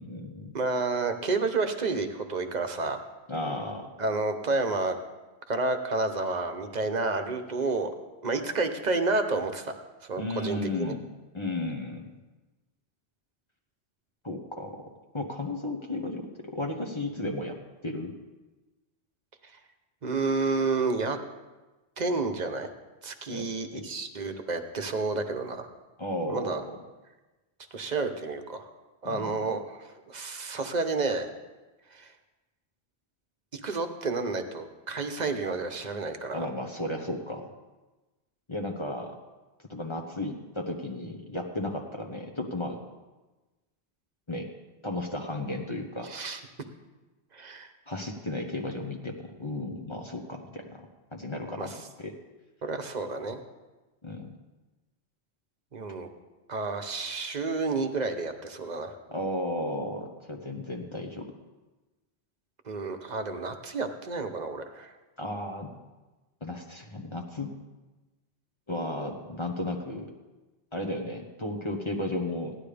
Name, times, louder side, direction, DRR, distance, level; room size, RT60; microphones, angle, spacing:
voice 1, 0.0-0.6 3.3-3.9 10.2-11.1 11.3-12.1 14.2-14.8 15.1-17.6 17.8-18.1 23.3-23.5 23.7-23.9 26.0-26.8 29.0-29.3 36.3-37.5 38.5-39.2 39.7-42.8 44.3-44.5 44.8-46.1 47.9-50.9 51.1-51.7 52.0-52.2 54.0-54.3 59.1-61.2 65.2-65.8 66.4-67.6 68.7-70.1 70.7-72.6, left 1 dB, 30° left, 2 dB, 1.0 m, -34 dB
voice 2, 0.5-3.0 4.0-5.0 5.5-7.9 8.2-9.7 10.0-10.9 19.4-19.5 20.0-21.2 22.0-22.7 23.0-25.7 26.3-26.6 27.7-28.7 29.0-31.3 31.9-32.1 33.5-36.5 46.0-46.4 47.3-47.7 51.6-51.8 52.6-53.4 55.7-56.1 56.5-59.0 62.6-64.9, right 3 dB, 45° right, 6 dB, 1.0 m, -30 dB
16.5 x 11.5 x 3.4 m, 1.1 s
omnidirectional pair, 1.1 m